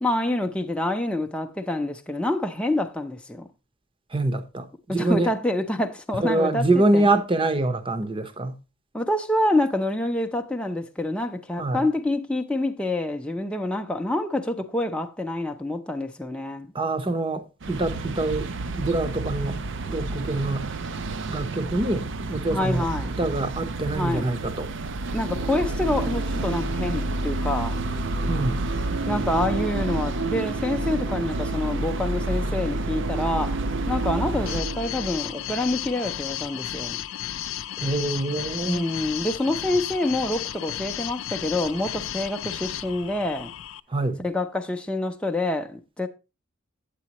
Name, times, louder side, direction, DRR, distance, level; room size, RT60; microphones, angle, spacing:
voice 1, 0.0-3.5 4.9-7.1 8.9-16.7 22.5-23.1 23.9-24.4 25.1-27.8 29.1-33.6 33.9-37.0 38.6-43.5 44.2-46.1, left 1 dB, 5° left, 0.6 m, -27 dB
voice 2, 4.1-5.3 6.2-8.6 11.6-11.8 16.7-18.5 18.8-20.7 21.3-22.8 23.2-24.7 28.3-28.7 37.8-38.8 43.9-44.2, right 2 dB, 25° right, 0.8 m, -25 dB
sound 1, 17.6-34.6, right 3 dB, 60° right, 0.6 m, -32 dB
sound 2, 25.2-36.0, right 1 dB, 80° right, 1.4 m, -30 dB
sound 3, 34.5-43.8, left 11 dB, 65° left, 0.4 m, -33 dB
8.8 x 8.4 x 2.9 m
head